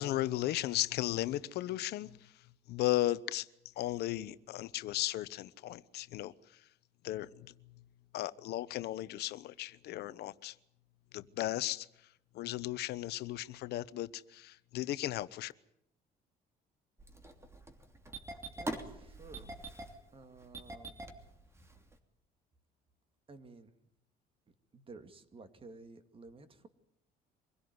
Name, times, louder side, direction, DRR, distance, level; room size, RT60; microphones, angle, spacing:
voice 1, 0.0-2.3 2.7-3.5 3.8-6.3 7.0-7.5 8.1-10.5 11.1-11.9 12.3-15.5, left 15 dB, 75° left, 0.9 m, -35 dB
Engine starting, 17.0-22.0, right 1 dB, 15° right, 3.0 m, -44 dB
voice 2, 18.6-19.5 20.1-21.0 21.6-21.7 23.3-23.8 24.7-26.7, right 3 dB, 30° right, 2.3 m, -53 dB
24.5 x 16.5 x 9.6 m
cardioid pair, 110°, 17 cm